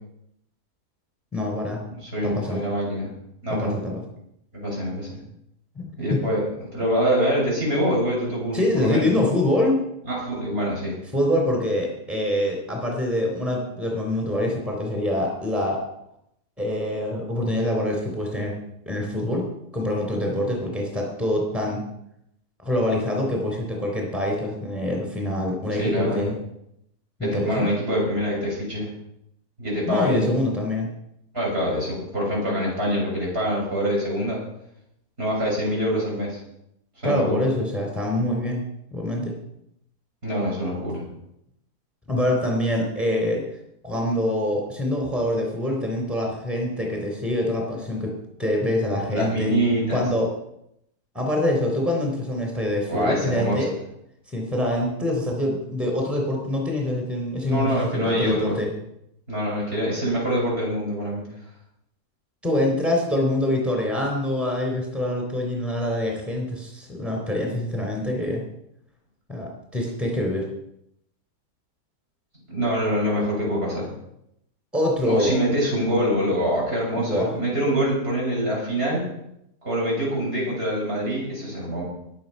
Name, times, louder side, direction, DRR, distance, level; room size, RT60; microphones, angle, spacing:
voice 1, 1.3-1.8 2.2-2.6 3.5-4.0 5.8-5.9 6.1-6.2 8.5-9.8 11.1-15.8 16.6-18.6 18.9-19.5 19.7-21.8 22.6-26.3 27.2-27.7 29.9-30.9 37.0-38.6 38.9-39.3 42.1-43.4 43.8-48.1 48.4-49.5 49.9-50.3 51.1-53.7 54.3-58.7 62.4-68.4 69.3-70.5 74.7-75.4 77.0-77.3, left 1 dB, ahead, 0 dB, 3.7 m, -25 dB
voice 2, 1.9-3.1 3.4-3.9 4.5-5.2 6.0-6.4 6.7-9.1 10.1-11.0 25.8-26.4 27.2-28.9 29.6-30.3 31.3-34.4 35.2-36.4 37.0-37.5 40.2-41.1 49.1-50.0 52.9-53.7 57.5-58.6 59.3-61.2 72.5-73.9 75.0-79.1 79.6-81.9, equal, 40° right, -4 dB, 7.4 m, -25 dB
22.0 x 7.9 x 5.6 m, 0.78 s
omnidirectional pair, 1.7 m